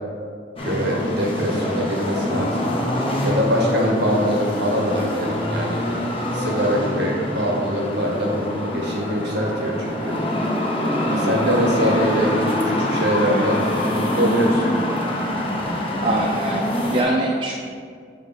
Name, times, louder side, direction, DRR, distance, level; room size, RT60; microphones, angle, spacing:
sound 1, 0.6-17.0, left 1 dB, 30° left, 0.8 m, -24 dB
voice 1, 0.6-2.7 3.2-5.8 6.3-10.2 11.2-12.3 12.6-13.6 13.9-14.7, equal, 60° right, -2 dB, 1.3 m, -23 dB
voice 2, 11.1-11.5 16.0-17.6, right 2 dB, 25° right, -1 dB, 0.3 m, -24 dB
7.9 x 3.2 x 4.3 m, 2.1 s
head